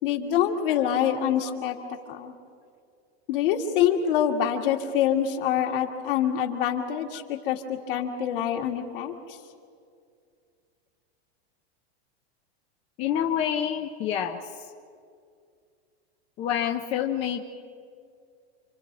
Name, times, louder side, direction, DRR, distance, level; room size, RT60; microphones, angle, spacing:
voice 1, 0.0-1.8 2.1-2.3 3.3-9.4, left 9 dB, 55° left, 2 dB, 2.4 m, -25 dB
voice 2, 13.0-14.4 16.4-17.4, left 9 dB, 20° left, 3 dB, 0.6 m, -27 dB
29.5 x 25.0 x 4.1 m, 2.3 s
supercardioid pair, 175°, 33 cm